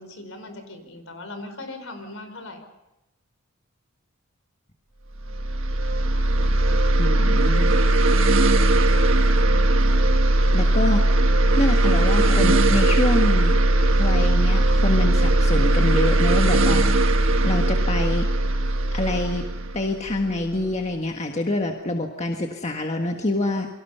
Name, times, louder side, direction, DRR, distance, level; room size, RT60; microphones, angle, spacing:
voice 1, 0.0-2.7, left 2 dB, 60° left, 7 dB, 5.0 m, -39 dB
sound 1, 5.2-20.6, right 1 dB, 60° right, 1.6 m, -19 dB
voice 2, 7.0-7.7 10.5-11.1 11.6-13.6 14.0-16.8 17.4-18.3 18.9-19.4 19.7-23.7, left 1 dB, 30° left, 3 dB, 1.6 m, -26 dB
29.0 x 24.5 x 5.7 m, 0.93 s
head